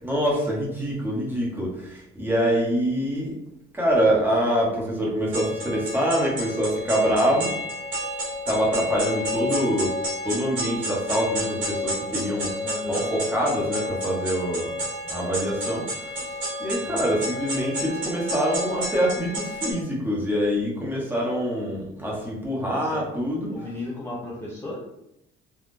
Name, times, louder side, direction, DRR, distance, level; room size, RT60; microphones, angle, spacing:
voice 1, 0.0-3.3 3.7-7.5 8.5-9.9 10.2-12.5 12.9-14.7 15.1-16.3 16.6-23.5, equal, 10° right, -4 dB, 1.0 m, -25 dB
sound 1, 5.3-19.7, left 1 dB, 70° right, 1.5 m, -30 dB
voice 2, 12.6-13.1 16.8-16.9 22.9-23.1 23.5-24.8, left 2 dB, 10° left, -6 dB, 0.6 m, -34 dB
3.5 x 2.4 x 2.6 m, 0.83 s
cardioid pair, 115°, 20 cm